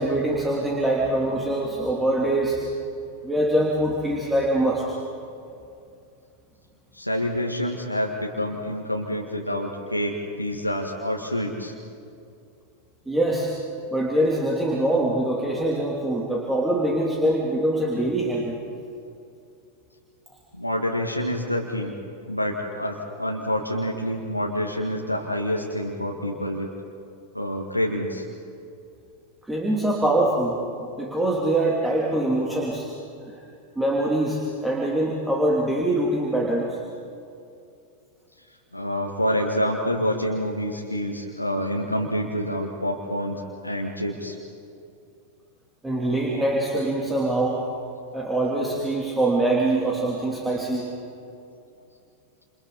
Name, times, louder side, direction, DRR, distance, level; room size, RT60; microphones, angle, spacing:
voice 1, 0.0-2.6 3.2-4.9 13.1-13.5 13.9-18.5 29.5-30.6 30.9-32.9 33.3-33.4 33.8-36.8 45.8-47.6 48.1-50.9, right 1 dB, 5° right, -3 dB, 3.1 m, -23 dB
voice 2, 6.9-11.7 20.6-21.9 22.3-26.7 27.3-28.3 38.7-44.4, equal, 90° left, 0 dB, 1.9 m, -27 dB
29.5 x 28.0 x 4.2 m, 2.5 s
figure-of-eight pair, 90°, 0 cm